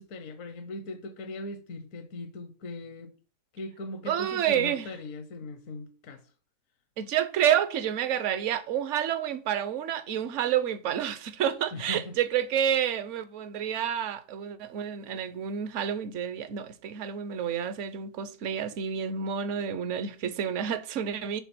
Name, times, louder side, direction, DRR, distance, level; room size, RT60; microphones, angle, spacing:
voice 1, 0.0-3.1 3.5-6.2 11.7-12.1, left 2 dB, 70° left, 1.1 m, -39 dB
voice 2, 4.1-4.9 7.0-21.4, right 9 dB, 65° right, 1.0 m, -29 dB
5.9 x 3.8 x 5.9 m
omnidirectional pair, 1.5 m